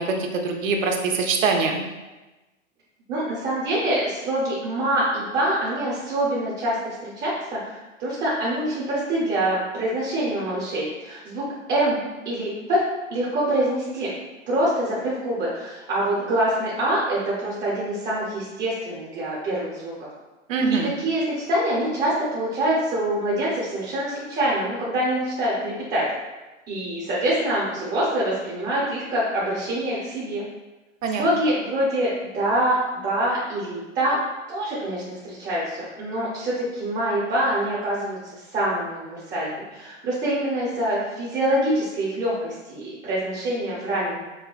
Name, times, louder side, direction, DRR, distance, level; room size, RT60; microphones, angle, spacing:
voice 1, 0.0-1.8 20.5-20.9 31.0-31.2, right 4 dB, 80° right, 2 dB, 0.7 m, -23 dB
voice 2, 3.1-12.0 12.2-12.8 13.1-14.1 14.5-20.1 20.7-26.0 26.7-30.4 31.2-34.2 34.5-44.2, right 1 dB, 25° right, -7 dB, 0.7 m, -25 dB
5.5 x 2.2 x 2.3 m, 1.1 s
hypercardioid pair, 120°, 38 cm